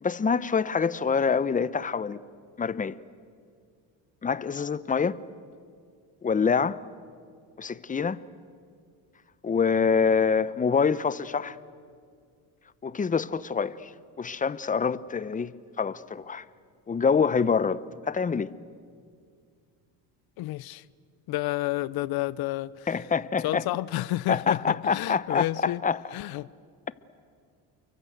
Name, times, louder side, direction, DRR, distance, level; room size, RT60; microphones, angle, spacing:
voice 1, 0.0-2.2 2.6-3.0 4.2-5.2 6.2-6.8 7.6-8.2 9.4-11.6 12.8-13.9 14.2-16.4 16.9-18.5 22.9-23.6 24.3-26.0, left 5 dB, 20° left, 0.8 m, -26 dB
voice 2, 20.4-20.8 21.3-22.9 23.4-25.8 26.1-26.5, left 16 dB, 65° left, 0.7 m, -30 dB
29.5 x 23.5 x 8.1 m
cardioid pair, 100°, 40 cm